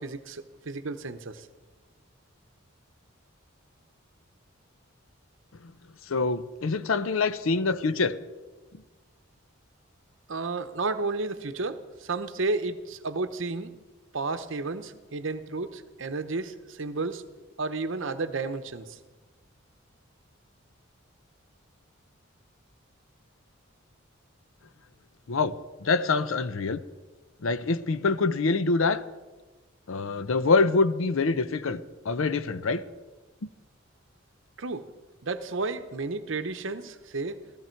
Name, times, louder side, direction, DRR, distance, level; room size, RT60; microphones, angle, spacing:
voice 1, 0.0-1.5 10.3-13.7 14.1-17.2 17.6-19.0 34.6-34.9 35.2-37.4, right 3 dB, 65° right, 10 dB, 0.8 m, -32 dB
voice 2, 6.1-8.1 25.3-25.5 25.8-26.8 27.4-29.0 29.9-32.8, left 3 dB, 70° left, 14 dB, 0.6 m, -25 dB
15.0 x 14.0 x 4.5 m, 1.3 s
head